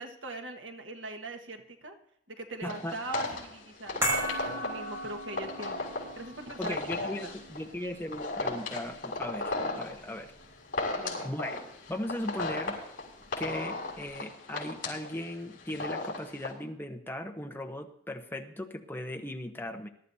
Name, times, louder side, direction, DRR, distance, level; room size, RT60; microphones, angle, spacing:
voice 1, 0.0-1.9 2.3-7.3 10.9-11.3, right 2 dB, 80° right, 4 dB, 1.6 m, -42 dB
voice 2, 2.6-3.0 6.6-10.3 11.2-11.6 11.9-12.8 13.4-19.9, left 1 dB, 10° left, 4 dB, 0.9 m, -38 dB
sound 1, 2.7-16.5, left 2 dB, 45° left, 5.8 m, -36 dB
sound 2, 4.0-10.4 10.7-10.8, equal, 15° right, 5.7 m, -37 dB
21.5 x 12.5 x 2.7 m, 0.72 s
head